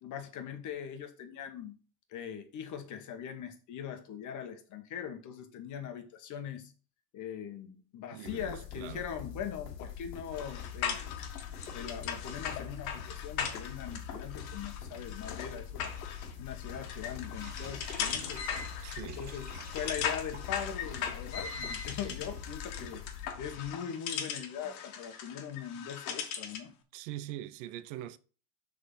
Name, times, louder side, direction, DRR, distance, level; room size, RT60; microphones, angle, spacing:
voice 1, 0.0-1.8 2.1-6.7 7.1-11.0 11.7-15.9 16.4-18.5 19.0-23.0 23.4-26.7, left 8 dB, 40° left, 1.4 m, -41 dB
voice 2, 8.1-9.1 18.8-19.3 26.9-28.2, right 13 dB, 55° right, 0.6 m, -43 dB
sound 1, 8.3-23.7, left 7 dB, 85° left, 1.5 m, -44 dB
sound 2, 10.3-26.7, left 7 dB, 60° left, 1.5 m, -39 dB
sound 3, 17.2-21.8 22.0-22.1 22.4-22.6 22.9-23.0, right 3 dB, 20° right, 3.7 m, -51 dB
6.4 x 3.9 x 5.5 m
hypercardioid pair, 105°, 47 cm